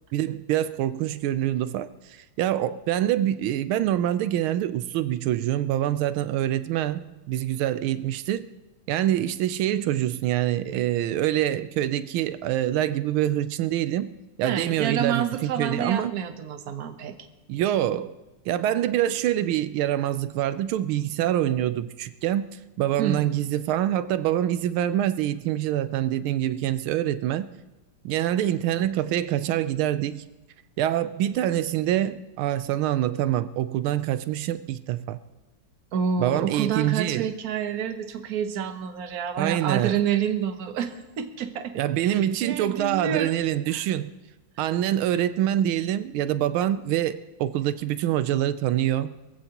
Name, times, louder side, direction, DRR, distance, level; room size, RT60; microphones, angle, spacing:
voice 1, 0.1-8.5 8.9-14.1 14.4-16.1 17.5-18.1 18.5-22.5 22.8-27.5 28.0-30.3 30.8-35.2 36.2-37.3 39.4-40.0 41.8-44.1 44.6-49.2, right 12 dB, 90° right, 1.5 m, -25 dB
voice 2, 14.4-17.1 23.0-23.3 35.9-41.8 42.1-43.3 43.7-43.9 44.6-44.7, right 8 dB, 55° right, 1.3 m, -28 dB
22.5 x 15.0 x 3.0 m
omnidirectional pair, 2.2 m